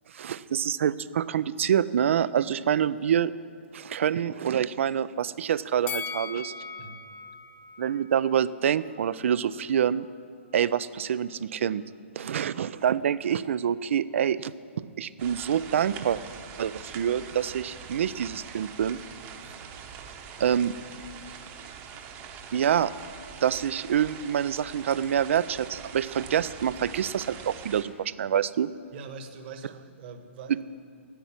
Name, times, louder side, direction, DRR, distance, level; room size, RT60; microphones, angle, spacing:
voice 1, 0.1-3.3 3.7-6.5 7.8-10.1 10.5-11.8 12.1-16.2 16.6-19.0 20.4-20.7 22.5-22.9 23.4-28.7, right 9 dB, 65° right, 18 dB, 0.4 m, -26 dB
Bell, 5.9-9.1 9.4-9.5, left 5 dB, 20° left, 0.7 m, -39 dB
sound 1, 15.2-27.8, right 7 dB, 30° right, 0.9 m, -43 dB
voice 2, 28.9-30.6, right 4 dB, 50° right, 7 dB, 1.3 m, -43 dB
10.0 x 8.1 x 8.7 m, 2.4 s
hypercardioid pair, 135°, 7 cm